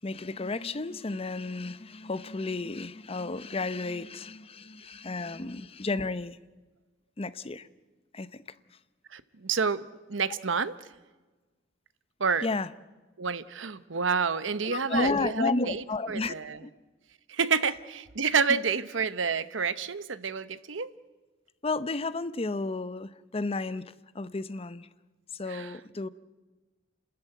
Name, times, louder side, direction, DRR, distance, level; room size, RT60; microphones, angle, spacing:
voice 1, 0.0-6.4 7.2-7.7 8.1-8.4 12.4-12.7 14.6-16.3 16.6-16.7 21.6-24.9 25.3-26.1, left 3 dB, 30° left, 0.7 m, -32 dB
voice 2, 9.1-10.7 12.2-12.5 13.2-16.6 17.3-20.9 25.5-25.8, right 5 dB, 75° right, 0.9 m, -29 dB
29.0 x 13.5 x 9.1 m
head